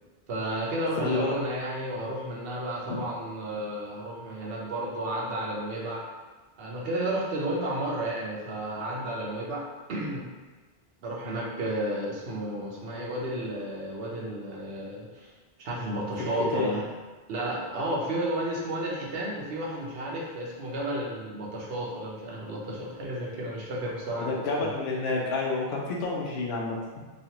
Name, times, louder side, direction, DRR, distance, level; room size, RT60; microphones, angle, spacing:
voice 1, 0.3-6.0 6.6-10.3 11.0-15.3 15.6-16.9 17.3-24.7, right 1 dB, 70° right, -3 dB, 0.9 m, -32 dB
voice 2, 1.0-1.4 16.2-16.8 24.2-27.0, left 3 dB, 85° left, -3 dB, 0.8 m, -29 dB
3.0 x 2.4 x 2.8 m, 1.3 s
omnidirectional pair, 1.0 m